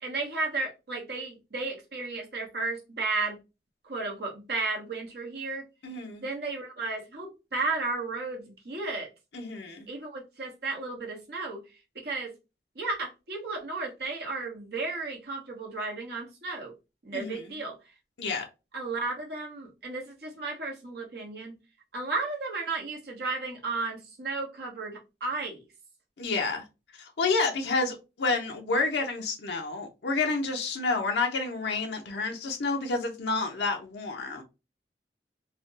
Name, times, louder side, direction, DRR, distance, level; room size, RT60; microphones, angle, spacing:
voice 1, 0.0-3.4 3.8-5.6 6.2-9.1 9.9-11.6 12.0-12.3 12.7-16.7 17.0-17.7 18.7-21.6 21.9-25.6, right 3 dB, 60° right, 1.0 m, -33 dB
voice 2, 5.8-6.2 9.3-9.9 17.1-17.4 18.2-18.5 26.2-26.6 27.0-34.4, left 3 dB, 75° left, 0.6 m, -29 dB
3.3 x 2.1 x 2.5 m
head